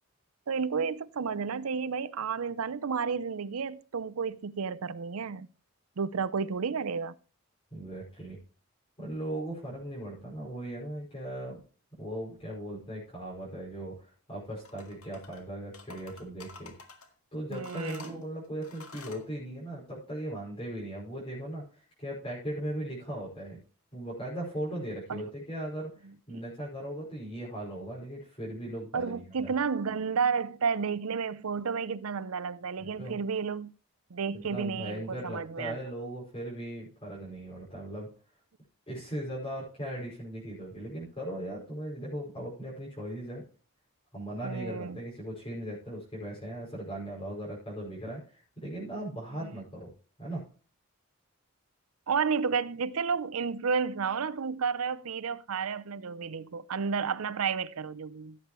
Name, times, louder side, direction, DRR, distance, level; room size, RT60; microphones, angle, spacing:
voice 1, 0.5-5.5 6.0-7.2 17.5-18.2 25.1-25.2 26.0-26.4 28.9-33.7 34.1-35.8 44.4-45.0 49.4-49.5 52.1-58.4, right 5 dB, 85° right, 0.6 m, -31 dB
voice 2, 7.7-8.4 9.0-11.6 12.0-16.7 17.3-23.6 23.9-29.5 32.8-33.2 34.5-38.1 38.9-43.4 44.1-49.9 50.2-50.4, right 1 dB, 25° left, 5.5 m, -38 dB
sound 1, 14.6-15.4 15.7-17.1 17.5-19.3, left 3 dB, 90° left, 2.0 m, -49 dB
16.0 x 8.3 x 3.1 m
head